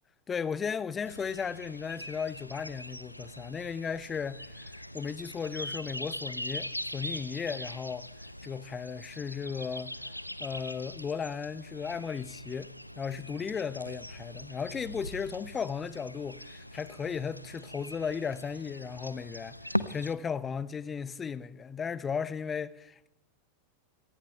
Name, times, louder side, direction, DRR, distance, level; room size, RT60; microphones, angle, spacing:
voice 1, 0.3-8.1 8.4-9.9 10.4-23.1, left 6 dB, 20° left, 0.6 m, -35 dB
sound 1, 1.0-20.1, left 1 dB, 90° left, 0.6 m, -41 dB
27.0 x 18.5 x 2.3 m
figure-of-eight pair, 90°, 0 cm